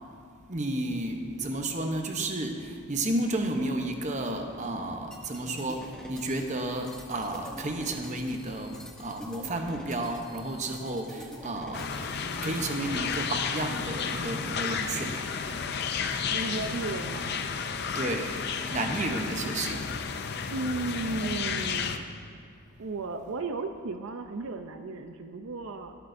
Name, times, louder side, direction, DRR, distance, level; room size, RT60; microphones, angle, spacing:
voice 1, 0.5-11.9 12.4-15.3 17.9-20.5, right 1 dB, 35° right, 4 dB, 0.8 m, -32 dB
sound 1, 5.1-12.6, equal, 5° left, 0.8 m, -47 dB
sound 2, 11.7-22.0, left 6 dB, 50° left, 0.5 m, -32 dB
voice 2, 16.3-17.4 20.5-22.1 22.8-26.0, right 3 dB, 70° right, 7 dB, 0.5 m, -34 dB
17.5 x 9.2 x 2.6 m, 2.4 s
head